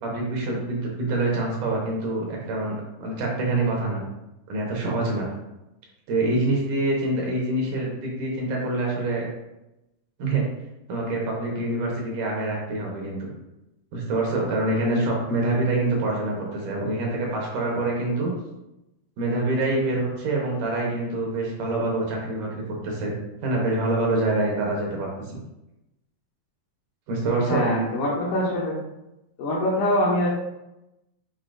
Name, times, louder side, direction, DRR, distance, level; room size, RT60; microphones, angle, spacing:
voice 1, 0.0-2.8 3.0-4.1 4.5-5.3 6.1-9.3 10.2-10.4 10.9-13.3 13.9-18.3 19.2-23.1 23.4-25.1 27.1-27.7, right 2 dB, 70° right, -2 dB, 2.5 m, -25 dB
voice 2, 27.5-28.8 29.4-30.3, left 1 dB, 75° left, -7 dB, 2.2 m, -24 dB
7.3 x 2.7 x 2.5 m, 0.91 s
omnidirectional pair, 3.9 m